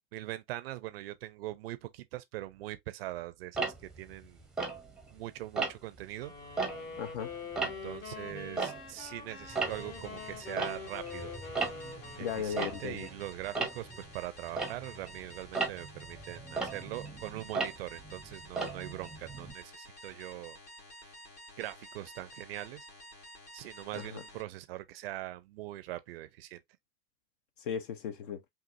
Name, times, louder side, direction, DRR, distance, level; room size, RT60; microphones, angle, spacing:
voice 1, 0.1-4.4 5.1-6.3 7.6-11.3 12.2-20.6 21.6-22.9 23.5-26.6, right 16 dB, 40° right, 0.5 m, -42 dB
Tick-tock, 3.5-5.2 5.6-6.0 6.4-9.2 9.4-19.5, right 4 dB, ahead, 0.7 m, -37 dB
sound 1, 6.2-13.0, left 5 dB, 55° left, 1.9 m, -45 dB
voice 2, 7.0-7.3 12.2-13.1 23.9-24.2 27.6-28.4, left 7 dB, 35° left, 0.4 m, -37 dB
sound 2, 9.5-24.4, equal, 70° left, 2.4 m, -51 dB
5.4 x 2.5 x 2.4 m
figure-of-eight pair, 95°, 47 cm